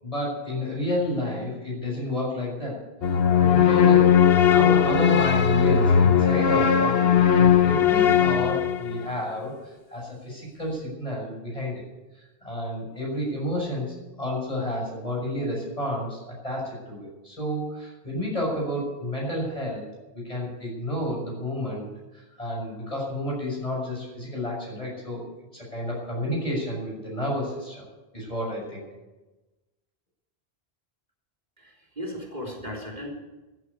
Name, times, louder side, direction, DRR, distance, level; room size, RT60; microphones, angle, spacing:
voice 1, 0.0-2.8 3.3-4.1 4.5-11.8 12.1-19.9 20.1-21.9 22.1-25.2 25.5-27.9 28.1-28.8, left 1 dB, 35° left, -3 dB, 6.7 m, -30 dB
sound 1, 3.0-9.1, left 8 dB, 70° left, 1.2 m, -19 dB
voice 2, 31.6-33.1, equal, 45° right, -1 dB, 3.6 m, -36 dB
14.5 x 9.9 x 8.4 m, 1.1 s
omnidirectional pair, 1.1 m